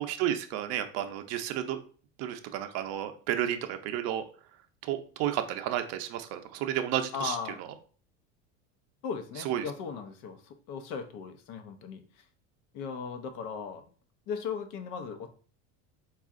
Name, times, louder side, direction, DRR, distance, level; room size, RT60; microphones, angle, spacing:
voice 1, 0.0-1.8 2.2-4.2 4.8-7.3 9.4-9.7, right 11 dB, 50° right, 7 dB, 0.6 m, -32 dB
voice 2, 7.1-7.6 9.0-12.2 12.7-13.8 14.3-15.3, left 6 dB, 60° left, 6 dB, 0.8 m, -37 dB
4.2 x 2.4 x 3.6 m, 0.41 s
supercardioid pair, 140°, 33 cm